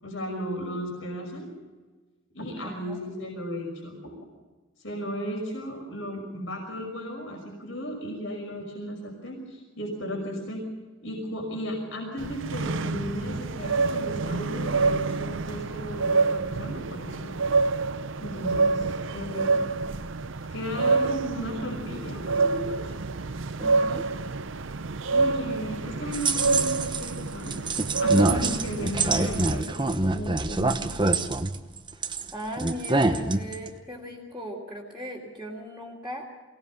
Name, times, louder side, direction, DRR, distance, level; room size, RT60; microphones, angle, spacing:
voice 1, 0.0-1.5 2.3-4.1 4.8-10.6 11.0-17.4 18.2-19.7 20.5-22.9 25.1-27.6 28.0-31.2, equal, 65° left, 1 dB, 5.8 m, -35 dB
voice 2, 2.6-3.0 20.9-21.0 23.6-24.1 32.3-36.3, equal, 5° right, -7 dB, 2.9 m, -38 dB
sound 1, 12.2-29.6, right 3 dB, 65° right, 0.7 m, -27 dB
sound 2, 26.1-27.1 27.5-32.3 32.6-33.7, right 2 dB, 25° right, 1.0 m, -25 dB
23.5 x 18.5 x 7.1 m, 1.3 s
head